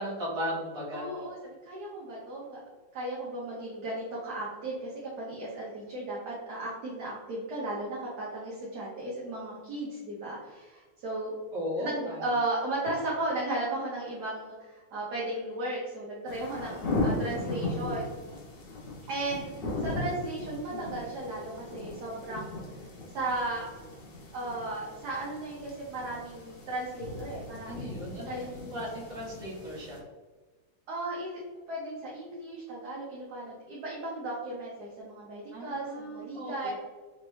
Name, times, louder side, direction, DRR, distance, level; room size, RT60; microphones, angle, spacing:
voice 1, 0.0-1.2 11.5-12.4 27.6-30.0 35.5-36.7, equal, 50° right, -7 dB, 1.7 m, -36 dB
voice 2, 0.9-2.6 2.9-11.3 11.8-18.1 19.1-22.6 23.1-23.6 24.3-27.8 28.2-28.4 30.9-31.4 31.7-36.7, right 2 dB, 65° right, -6 dB, 1.2 m, -35 dB
sound 1, 16.3-30.0, left 2 dB, 70° left, 0.5 m, -37 dB
4.1 x 2.6 x 3.1 m, 1.3 s
omnidirectional pair, 2.1 m